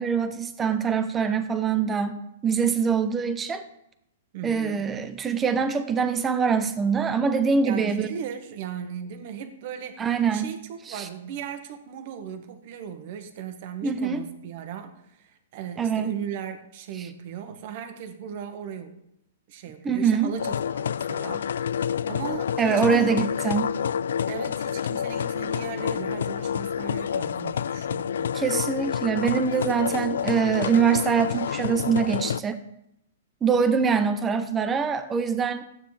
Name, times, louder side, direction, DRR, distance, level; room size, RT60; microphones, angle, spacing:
voice 1, 0.0-2.1 2.4-3.6 4.4-8.1 10.0-10.5 10.9-11.1 13.8-14.2 15.8-16.1 17.0-17.1 19.8-20.3 22.6-23.7 28.3-32.6 33.4-35.6, right 6 dB, 15° right, 10 dB, 0.7 m, -24 dB
voice 2, 4.3-4.8 7.6-10.1 10.3-19.0 19.5-23.3 24.3-28.4, right 8 dB, 45° right, 8 dB, 1.3 m, -37 dB
sound 1, 20.4-32.4, left 8 dB, 75° left, 0.3 m, -28 dB
14.5 x 8.9 x 3.3 m, 0.78 s
hypercardioid pair, 165°, 0 cm